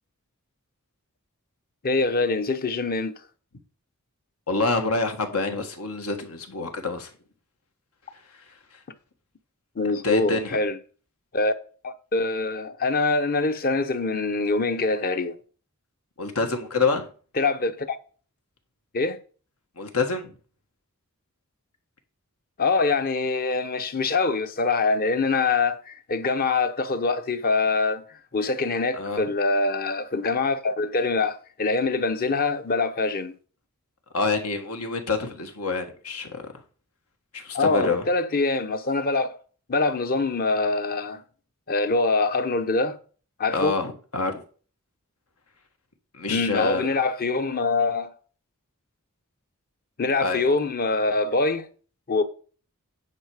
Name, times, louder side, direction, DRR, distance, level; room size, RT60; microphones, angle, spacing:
voice 1, 1.8-3.2 9.8-10.8 11.3-11.5 11.8-15.4 17.4-18.0 18.9-19.2 22.6-28.0 28.3-33.3 37.5-39.4 39.7-41.2 41.7-43.0 43.4-43.8 46.3-48.1 50.0-51.7 52.1-52.2, left 3 dB, 40° left, 0.8 m, -24 dB
voice 2, 4.5-7.1 10.0-10.6 16.2-17.1 19.8-20.4 29.0-29.2 34.1-36.5 37.3-38.0 43.5-44.4 46.1-46.9 50.2-50.4, left 3 dB, 85° left, 1.6 m, -26 dB
9.9 x 5.0 x 4.9 m
head